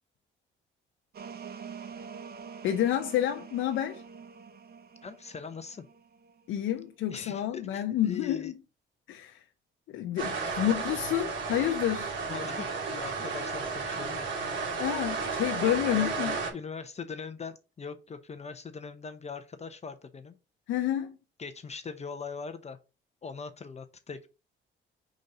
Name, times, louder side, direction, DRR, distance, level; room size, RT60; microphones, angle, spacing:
sound 1, 1.1-6.6, right 6 dB, 50° right, 0.9 m, -46 dB
voice 1, 2.6-4.0 6.5-8.5 9.1-9.5 9.9-12.1 14.8-16.3 20.7-21.2, left 11 dB, 85° left, 0.7 m, -29 dB
voice 2, 5.0-5.8 7.1-8.5 12.3-14.3 15.9-20.4 21.4-22.8 23.2-24.3, left 5 dB, 35° left, 0.8 m, -41 dB
sound 2, 10.2-16.5, right 4 dB, 70° right, 2.7 m, -33 dB
5.2 x 4.0 x 5.1 m
cardioid pair, 90°, 20 cm